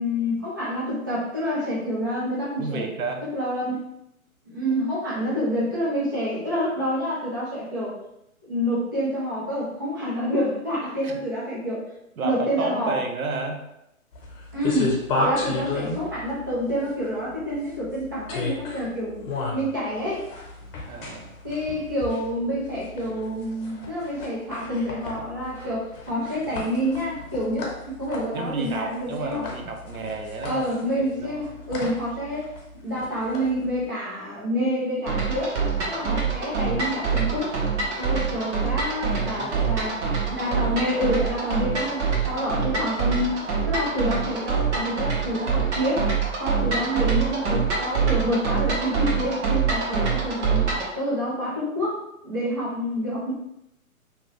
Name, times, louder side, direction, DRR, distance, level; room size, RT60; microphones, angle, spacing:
voice 1, 0.0-2.9 3.3-3.8 4.5-7.9 8.5-11.8 12.2-13.0 14.5-20.3 21.4-29.4 30.4-32.5 32.8-35.5 35.9-37.6 38.0-40.0 40.2-46.1 46.4-50.6 50.9-53.3, equal, 15° right, -9 dB, 0.3 m, -28 dB
voice 2, 2.6-3.3 11.0-11.2 12.2-13.6 20.9-21.3 28.3-30.7 31.0-31.5 39.0-39.9, right 3 dB, 75° right, 4 dB, 0.7 m, -31 dB
sound 1, 14.1-33.9, left 2 dB, 40° left, 0.9 m, -33 dB
sound 2, 35.1-50.9, right 5 dB, 55° right, 0.9 m, -25 dB
2.9 x 2.5 x 3.1 m, 0.83 s
figure-of-eight pair, 130°, 43 cm